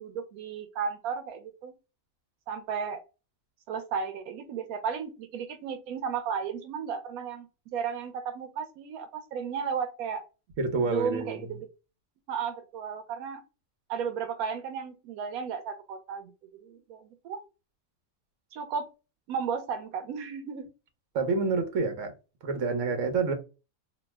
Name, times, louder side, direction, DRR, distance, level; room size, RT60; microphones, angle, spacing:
voice 1, 0.0-1.7 2.5-3.0 3.7-7.5 7.7-10.2 10.8-11.7 12.3-13.4 13.9-16.3 16.6-17.4 18.5-18.9 19.3-20.7, right 6 dB, 90° right, 1.1 m, -34 dB
voice 2, 10.6-11.5 21.1-22.1 22.4-23.3, right 4 dB, 65° right, 1.1 m, -28 dB
2.8 x 2.0 x 3.2 m
omnidirectional pair, 1.5 m